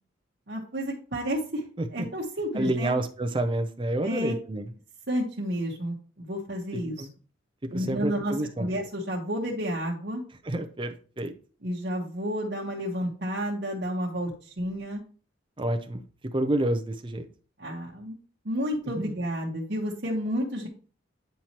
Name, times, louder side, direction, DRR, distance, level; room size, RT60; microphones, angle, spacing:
voice 1, 0.5-1.6 1.9-3.0 4.0-4.3 5.1-7.1 7.7-10.2 11.6-15.0 17.6-18.2 18.4-20.7, equal, 50° right, -5 dB, 1.1 m, -31 dB
voice 2, 2.5-4.7 6.7-7.1 7.7-8.7 10.4-11.3 15.6-16.0 16.3-17.3 18.8-19.2, right 1 dB, 25° right, 7 dB, 0.5 m, -29 dB
9.2 x 4.3 x 2.9 m, 0.40 s
head